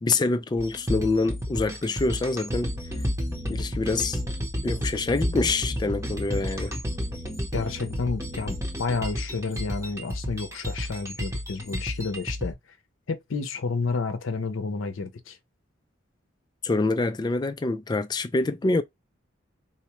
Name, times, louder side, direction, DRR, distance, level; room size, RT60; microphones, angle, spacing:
voice 1, 0.0-2.7 3.5-4.2 4.6-6.7 16.6-18.8, left 3 dB, 20° left, 0.3 m, -26 dB
sound 1, 0.6-12.5, equal, 15° right, 0.8 m, -31 dB
voice 2, 7.5-12.6 13.1-15.4, left 4 dB, 85° left, 0.6 m, -30 dB
4.1 x 2.2 x 2.9 m
head